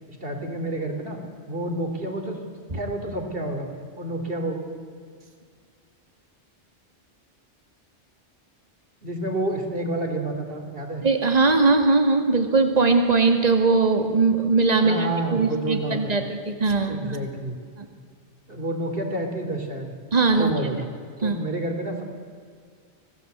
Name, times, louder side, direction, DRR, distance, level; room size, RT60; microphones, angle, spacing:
voice 1, 0.1-1.2 1.5-2.4 2.7-3.7 4.0-4.6 9.0-11.0 14.8-16.3 16.9-17.6 18.5-20.0 20.4-20.9 21.2-22.0, right 1 dB, 50° right, 4 dB, 3.5 m, -29 dB
voice 2, 11.0-17.2 17.8-17.9 20.1-20.5 21.2-21.3, right 3 dB, 35° right, 5 dB, 2.2 m, -20 dB
26.0 x 18.0 x 8.1 m, 2.1 s
omnidirectional pair, 1.2 m